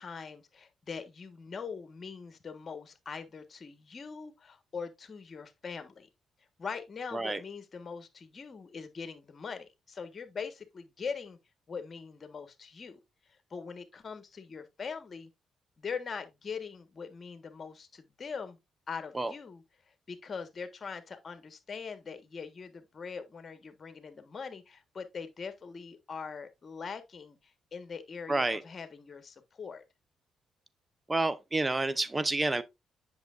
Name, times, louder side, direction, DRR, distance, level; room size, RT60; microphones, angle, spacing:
voice 1, 0.0-6.1 6.6-11.4 11.7-13.0 13.5-15.3 15.8-18.6 18.9-19.6 20.1-29.8, left 5 dB, 45° left, 1.3 m, -42 dB
voice 2, 28.3-28.6 31.1-32.6, right 2 dB, 25° right, 0.8 m, -29 dB
8.0 x 6.3 x 2.5 m
supercardioid pair, 70°, 0 cm